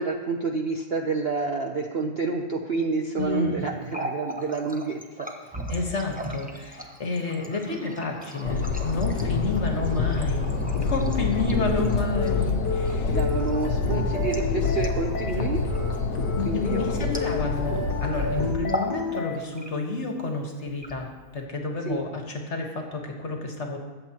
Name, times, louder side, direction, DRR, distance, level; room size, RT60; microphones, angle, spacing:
voice 1, 0.0-5.5 9.9-10.0 13.1-15.6 16.5-17.1 21.9-22.0, right 4 dB, 55° right, 2 dB, 0.7 m, -29 dB
voice 2, 3.2-3.6 5.7-10.5 10.8-13.2 16.0-23.8, left 3 dB, 45° left, 2 dB, 1.6 m, -30 dB
Water tap faucet, 3.7-17.8 18.0-18.2 18.6-19.0 19.3-20.0 20.6-21.4, equal, 5° right, 0.7 m, -39 dB
sound 1, 8.5-18.5, left 4 dB, 70° left, 1.4 m, -27 dB
sound 2, 11.4-19.4, left 3 dB, 85° left, 1.6 m, -33 dB
22.5 x 8.0 x 2.9 m, 1.4 s
omnidirectional pair, 1.7 m